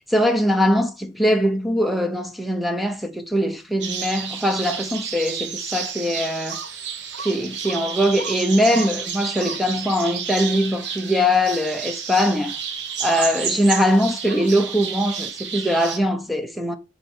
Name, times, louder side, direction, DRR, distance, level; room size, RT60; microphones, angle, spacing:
voice 1, 0.0-6.6 7.2-12.6 13.0-16.8, equal, ahead, 0.9 m, -21 dB
sound 1, 3.8-16.0, right 7 dB, 80° right, 1.2 m, -31 dB
7.4 x 4.1 x 6.3 m
head